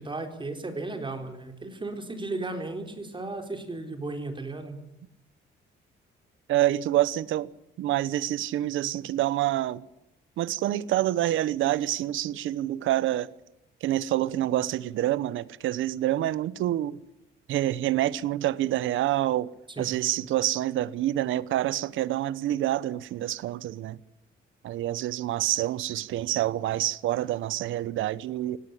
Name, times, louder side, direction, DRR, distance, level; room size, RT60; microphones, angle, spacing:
voice 1, 0.0-4.8 19.7-19.9, right 2 dB, 25° right, 4.0 m, -35 dB
voice 2, 6.5-7.5 7.8-9.8 10.4-13.3 13.8-17.0 17.5-19.5 19.8-24.0 24.6-28.6, right 14 dB, 85° right, 0.9 m, -27 dB
18.0 x 17.0 x 10.0 m
cardioid pair, 90°, 20 cm